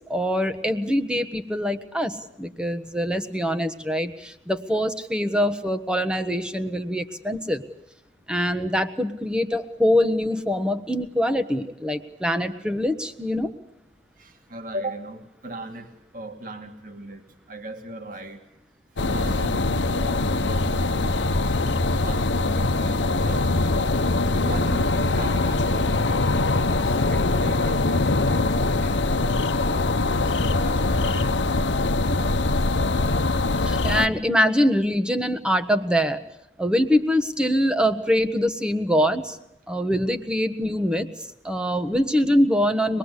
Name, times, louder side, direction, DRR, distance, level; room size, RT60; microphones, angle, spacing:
voice 1, 0.1-7.6 8.3-13.5 33.6-36.2 36.6-39.4 39.7-41.1 41.4-43.0, equal, 5° right, 9 dB, 1.3 m, -24 dB
voice 2, 14.2-18.4 18.9-23.9 24.4-29.0 29.2-32.9, right 1 dB, 50° right, 5 dB, 2.2 m, -39 dB
sound 1, 19.0-34.1, left 2 dB, 90° left, 1.1 m, -22 dB
25.5 x 21.0 x 8.3 m, 0.83 s
head